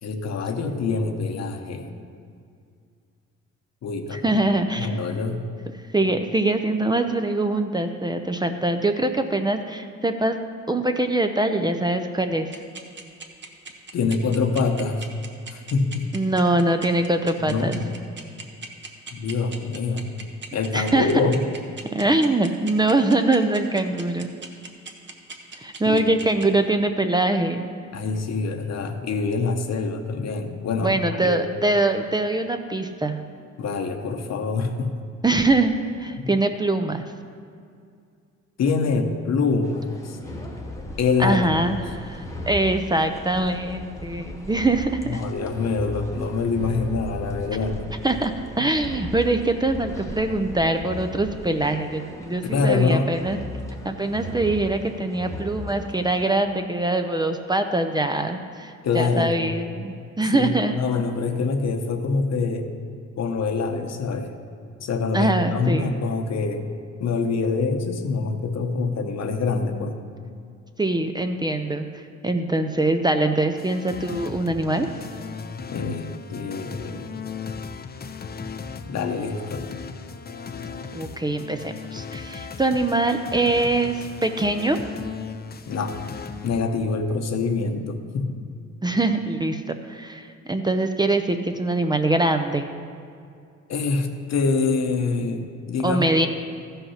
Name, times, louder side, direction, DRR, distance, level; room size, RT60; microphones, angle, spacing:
voice 1, 0.0-1.9 3.8-4.4 4.8-5.5 13.9-15.1 15.5-16.1 17.4-17.9 19.1-20.1 20.5-21.4 25.8-26.0 27.9-31.4 33.6-34.9 36.2-36.3 38.6-40.2 41.0-41.5 45.1-47.8 52.4-53.1 58.8-59.5 60.3-62.7 63.2-64.3 64.8-66.6 67.0-70.0 75.7-77.2 78.9-79.7 85.7-86.0 86.4-88.4 93.7-96.0, left 4 dB, 60° left, 5 dB, 1.0 m, -25 dB
voice 2, 4.1-4.9 5.9-10.4 10.7-12.5 16.1-17.8 20.7-21.1 21.9-24.3 25.6-27.7 30.8-33.2 35.2-35.7 36.0-37.1 41.2-45.2 48.0-53.4 53.8-60.7 65.1-65.9 70.8-74.9 80.9-84.8 88.8-92.7 95.8-96.3, right 2 dB, 15° right, 6 dB, 0.6 m, -23 dB
sound 1, 12.5-26.4, right 4 dB, 40° right, 1.2 m, -38 dB
sound 2, 39.6-56.3, left 1 dB, 10° left, 1.3 m, -37 dB
sound 3, 73.6-86.6, left 5 dB, 30° left, 0.6 m, -37 dB
14.0 x 5.6 x 5.7 m, 2.3 s
cardioid pair, 90°, 30 cm